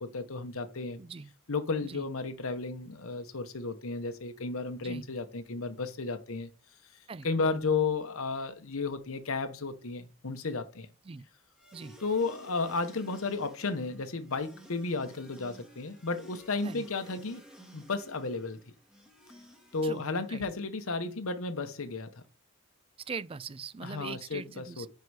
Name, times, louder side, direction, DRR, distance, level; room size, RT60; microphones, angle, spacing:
voice 1, 0.0-1.0 1.5-6.5 7.2-10.9 12.0-17.4 17.7-18.6 19.7-22.1 23.8-24.9, left 3 dB, 70° left, 0.9 m, -33 dB
voice 2, 1.0-1.3 1.8-2.1 4.8-5.1 7.1-7.5 11.1-11.3 11.7-12.0 16.6-16.9 19.8-20.4 23.1-24.9, right 5 dB, 25° right, 0.3 m, -42 dB
sound 1, 11.6-20.7, right 1 dB, 5° right, 1.6 m, -54 dB
9.5 x 4.7 x 4.8 m
head